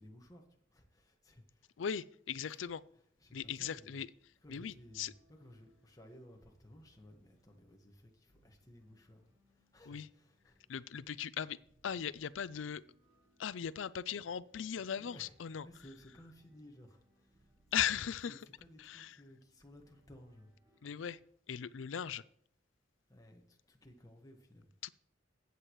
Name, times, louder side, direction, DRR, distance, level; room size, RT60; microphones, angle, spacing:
voice 1, 0.0-1.9 2.3-10.6 15.0-20.9 23.1-24.7, equal, 20° left, 2 dB, 1.5 m, -58 dB
voice 2, 1.8-2.8 3.3-4.1 4.5-5.1 9.9-10.1 10.7-12.8 13.4-15.7 17.7-18.4 18.8-19.2 20.8-21.2 21.5-22.2 24.8-24.9, left 8 dB, 85° left, 18 dB, 0.4 m, -38 dB
sound 1, 3.2-21.3, equal, 25° right, 4.4 m, -72 dB
21.5 x 8.2 x 3.1 m, 0.70 s
head